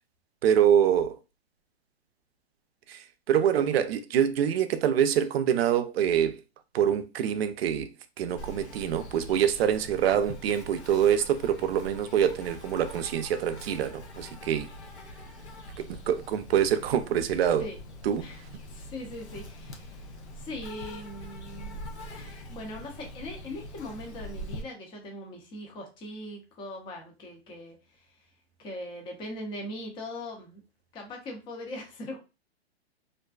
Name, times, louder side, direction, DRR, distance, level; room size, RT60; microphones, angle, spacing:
voice 1, 0.4-1.2 2.9-6.4 6.7-7.9 8.2-14.7 15.8-17.7 18.0-18.3, right 9 dB, 65° right, 0.5 m, -25 dB
Insect, 8.4-24.6, equal, 90° left, 0.8 m, -43 dB
voice 2, 18.7-21.8 22.1-28.0 28.6-30.6 30.9-32.2, left 1 dB, 15° left, 0.5 m, -40 dB
2.5 x 2.2 x 2.3 m
hypercardioid pair, 130°, 32 cm